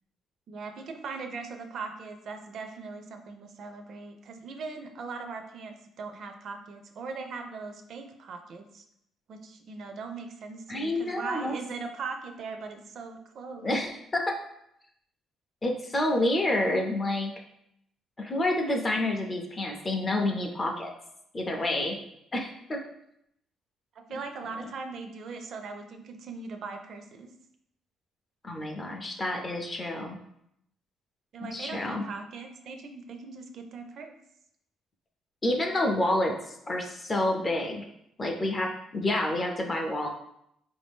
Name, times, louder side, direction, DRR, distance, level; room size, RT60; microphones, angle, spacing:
voice 1, 0.5-8.8 9.3-13.7 24.0-27.3 31.3-34.1, right 4 dB, 45° right, 5 dB, 0.4 m, -40 dB
voice 2, 10.7-11.6 13.6-14.3 15.6-17.3 18.2-20.9 21.3-22.0 22.3-22.8 24.1-24.2 28.4-30.2 31.4-32.0 35.4-37.9 38.2-40.1, left 1 dB, 20° left, 2 dB, 0.4 m, -28 dB
4.5 x 2.6 x 3.4 m, 0.76 s
cardioid pair, 175°, 0 cm